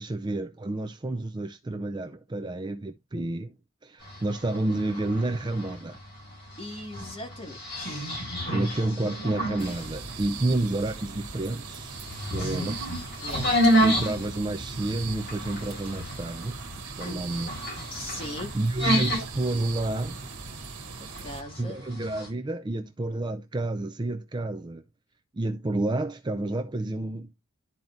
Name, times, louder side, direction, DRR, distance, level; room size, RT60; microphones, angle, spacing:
voice 1, 0.0-3.5 3.8-6.0 8.5-11.9 12.3-12.8 13.8-16.6 17.0-17.5 18.2-20.2 21.6-24.8 25.3-27.3, right 2 dB, 20° right, 0.4 m, -30 dB
sound 1, 4.0-22.3, equal, 50° left, 4.2 m, -31 dB
voice 2, 6.6-8.2 12.4-12.8 13.2-13.6 17.0-17.5 17.9-18.5 21.0-21.8, left 1 dB, 25° left, 2.2 m, -40 dB
sound 2, 9.6-21.4, right 4 dB, 85° right, 1.3 m, -40 dB
12.0 x 4.5 x 2.6 m
head